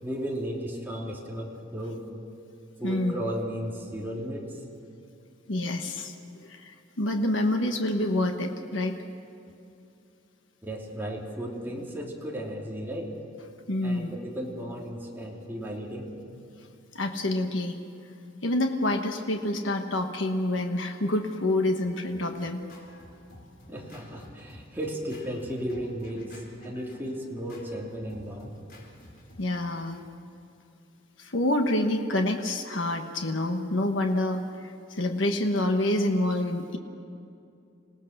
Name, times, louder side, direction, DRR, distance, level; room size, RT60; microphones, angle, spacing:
voice 1, 0.0-2.0 2.8-4.5 10.6-13.1 13.8-16.1 23.7-26.3 26.6-28.5, equal, 10° right, -2 dB, 3.0 m, -35 dB
voice 2, 2.8-3.2 5.5-8.9 13.7-14.1 16.9-17.8 18.4-22.6 29.4-30.0 31.2-36.8, left 1 dB, 80° left, 4 dB, 1.3 m, -27 dB
Scratching (performance technique), 21.5-30.0, left 1 dB, 55° left, 4.3 m, -53 dB
27.0 x 18.0 x 6.6 m, 2.6 s
head